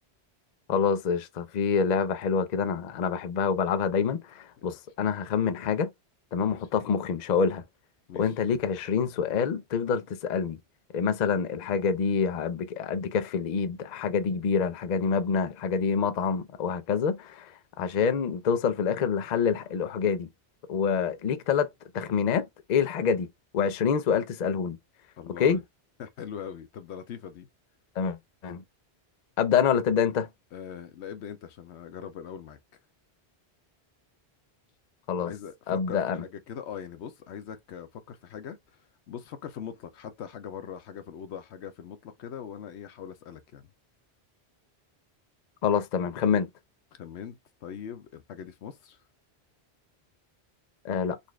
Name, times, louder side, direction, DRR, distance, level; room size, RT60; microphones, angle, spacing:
voice 1, 0.7-5.9 6.3-7.6 8.1-10.6 10.9-20.3 20.7-21.7 21.9-23.3 23.5-24.8 25.4-25.6 28.0-28.2 28.4-28.6 29.4-30.3 35.1-35.3 35.7-36.2 45.6-46.5 50.8-51.2, left 6 dB, 50° left, 0.6 m, -26 dB
voice 2, 6.5-6.8 8.1-8.3 25.2-25.6 26.0-27.5 30.5-32.6 35.2-38.6 39.1-43.6 47.0-49.0, left 8 dB, 85° left, 0.9 m, -41 dB
3.9 x 2.4 x 3.1 m
omnidirectional pair, 1.1 m